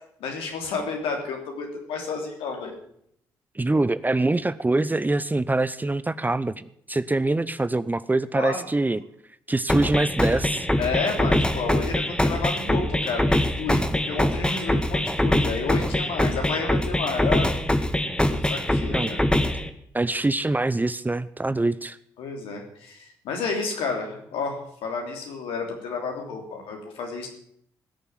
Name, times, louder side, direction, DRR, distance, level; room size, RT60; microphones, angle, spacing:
voice 1, 0.2-2.8 8.3-8.6 10.8-17.5 18.3-19.2 22.2-27.3, left 4 dB, 70° left, 2 dB, 3.2 m, -31 dB
voice 2, 3.5-9.0 9.5-10.7 18.9-19.1 19.9-22.0, right 2 dB, 20° right, 16 dB, 0.7 m, -24 dB
sound 1, 9.7-19.7, left 1 dB, 10° left, 1.7 m, -23 dB
17.0 x 7.0 x 9.0 m, 0.69 s
hypercardioid pair, 40°, 10 cm